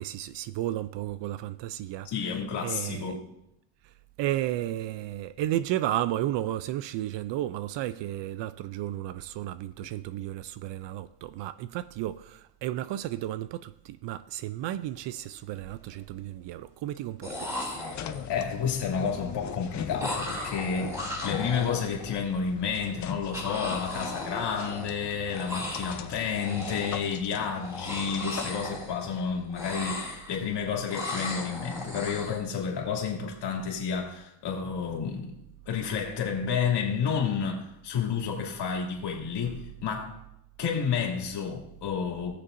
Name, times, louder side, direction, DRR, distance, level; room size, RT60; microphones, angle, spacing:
voice 1, 0.0-2.1 2.6-3.2 4.2-17.7, right 13 dB, 65° right, 0.5 m, -33 dB
voice 2, 2.0-3.3 18.3-35.4 35.7-40.2 40.6-42.4, left 6 dB, 55° left, 2.6 m, -30 dB
sound 1, 14.8-15.0 15.3-15.9 16.9-17.0 17.2-18.4 20.0-22.2 23.3-25.1 25.3-26.1 26.3-27.2 27.6-29.2 29.5-30.5 30.9-32.4, left 1 dB, 5° right, 2.6 m, -36 dB
sound 2, 17.3-29.2, left 10 dB, 40° left, 0.6 m, -41 dB
18.5 x 6.8 x 2.6 m
cardioid pair, 130°, 48 cm